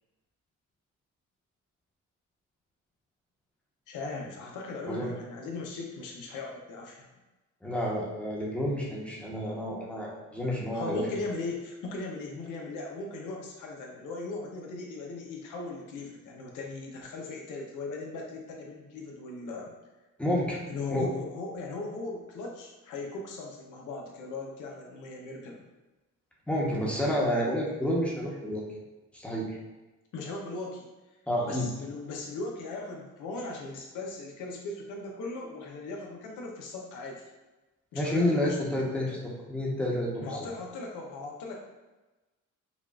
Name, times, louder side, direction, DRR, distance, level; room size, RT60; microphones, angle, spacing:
voice 1, 3.9-7.1 10.7-19.7 20.7-25.7 30.1-30.9 31.5-37.2 37.9-39.2 40.2-41.5, left 3 dB, 85° left, 0 dB, 0.7 m, -38 dB
voice 2, 7.6-11.0 20.2-20.6 20.9-21.1 26.5-28.6 29.1-29.6 31.3-31.7 37.9-40.2, left 1 dB, 5° left, -4 dB, 1.0 m, -29 dB
5.2 x 2.4 x 2.4 m, 1.1 s
cardioid pair, 90°, 30 cm